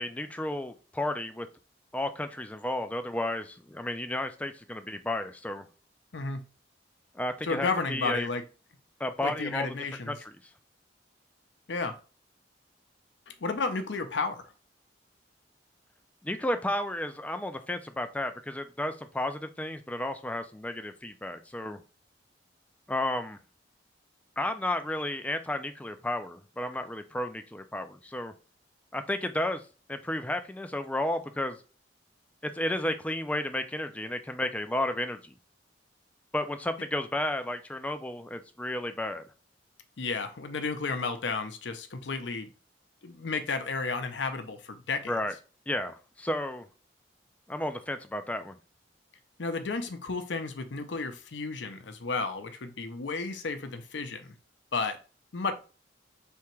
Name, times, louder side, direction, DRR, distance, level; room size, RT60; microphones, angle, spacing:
voice 1, 0.0-1.5 1.9-5.7 7.1-8.3 9.0-9.7 10.1-10.3 16.2-21.8 22.9-23.4 24.4-28.3 28.9-29.6 29.9-31.6 32.4-35.3 36.3-39.2 45.1-45.3 45.7-46.7 47.5-48.5, left 1 dB, 10° left, 0.4 m, -32 dB
voice 2, 6.1-6.4 7.4-8.4 9.2-10.2 11.7-12.0 13.4-14.5 40.0-42.5 43.0-45.1 49.4-54.3 54.7-55.0 55.3-55.5, left 4 dB, 70° left, 0.6 m, -32 dB
3.5 x 2.9 x 4.4 m
head